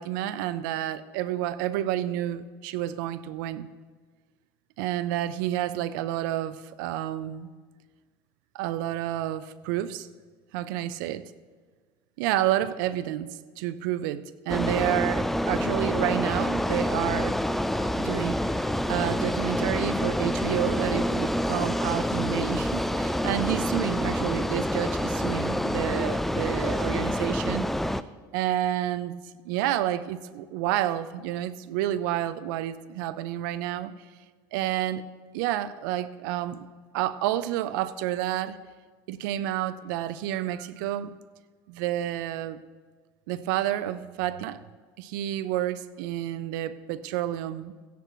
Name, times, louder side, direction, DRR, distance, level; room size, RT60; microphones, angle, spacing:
voice 1, 0.0-3.7 4.8-7.5 8.5-10.1 10.5-11.3 12.2-17.4 17.8-27.7 28.3-29.2 29.4-33.9 34.5-35.1 35.3-36.7 36.9-38.6 39.1-41.1 41.7-42.6 43.3-44.6 45.0-47.7, right 13 dB, 85° right, 15 dB, 0.6 m, -30 dB
sound 1, 14.5-28.0, equal, ahead, 0.3 m, -27 dB
16.0 x 10.0 x 3.1 m, 1.5 s
supercardioid pair, 105°, 10 cm